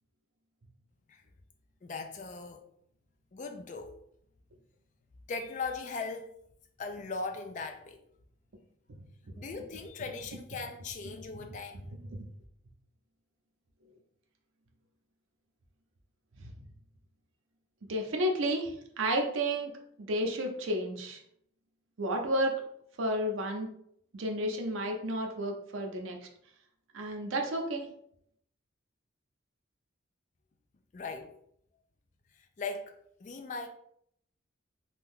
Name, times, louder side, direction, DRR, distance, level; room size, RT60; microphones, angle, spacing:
voice 1, 1.8-2.6 3.3-3.9 5.3-6.3 6.8-8.0 9.3-12.0 30.9-31.3 32.3-32.9 33.2-33.7, left 4 dB, 40° left, 0.3 m, -39 dB
voice 2, 17.9-19.7 20.0-21.2 22.0-22.5 23.0-23.7 24.1-26.2 26.9-27.9, right 1 dB, 75° right, 0.6 m, -31 dB
2.6 x 2.2 x 3.5 m
head